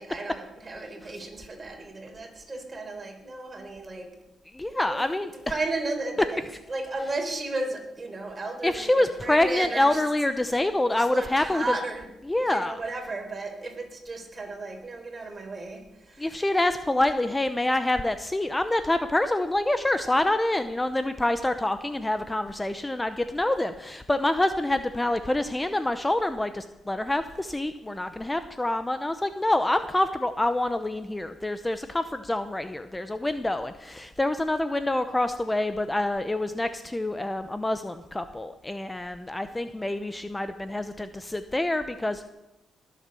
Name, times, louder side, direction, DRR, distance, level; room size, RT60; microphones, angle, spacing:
voice 1, 0.0-4.1 4.7-5.0 5.3-6.4 6.7-10.0 11.0-12.1 12.4-16.5, right 2 dB, 30° right, 4 dB, 4.0 m, -34 dB
voice 2, 4.5-5.3 8.6-11.6 12.3-12.8 16.2-42.3, left 1 dB, 15° left, 10 dB, 0.8 m, -26 dB
20.5 x 7.5 x 7.0 m, 0.97 s
cardioid pair, 90°, 0 cm